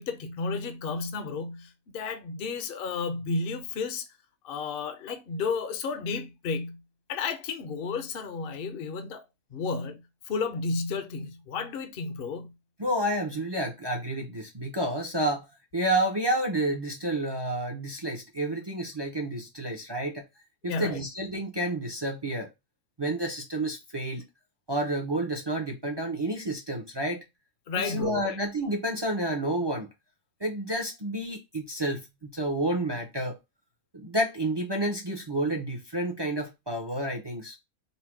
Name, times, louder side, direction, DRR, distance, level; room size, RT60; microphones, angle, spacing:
voice 1, 0.0-4.1 4.4-6.8 7.1-9.3 9.5-12.5 20.7-21.0 27.7-28.4, left 4 dB, 55° left, 0.6 m, -32 dB
voice 2, 12.8-15.5 15.7-20.2 20.6-22.5 23.0-24.2 24.7-27.2 27.8-29.9 30.4-33.4 33.9-37.6, right 1 dB, 40° right, 0.3 m, -30 dB
4.1 x 2.1 x 4.5 m
omnidirectional pair, 1.5 m